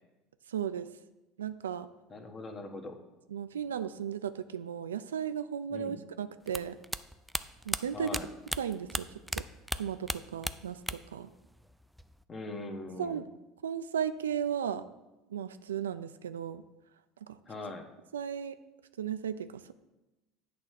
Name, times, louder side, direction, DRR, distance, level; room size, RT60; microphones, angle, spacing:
voice 1, 0.5-0.9 1.4-1.9 3.3-6.8 7.7-8.2 8.6-9.1 9.3-9.4 9.7-11.3 13.0-13.2 13.6-14.8 15.3-16.6 17.3-17.4 18.1-18.6 19.0-19.7, right 8 dB, 90° right, 12 dB, 0.3 m, -35 dB
voice 2, 2.1-3.0 5.7-6.0 7.9-8.3 12.3-13.2 17.5-17.9, left 2 dB, 30° left, 5 dB, 1.1 m, -41 dB
sound 1, 6.5-9.4 9.7-11.2 11.5-12.2, equal, 5° right, 0.3 m, -35 dB
8.4 x 3.2 x 6.4 m, 1.0 s
hypercardioid pair, 75°, 0 cm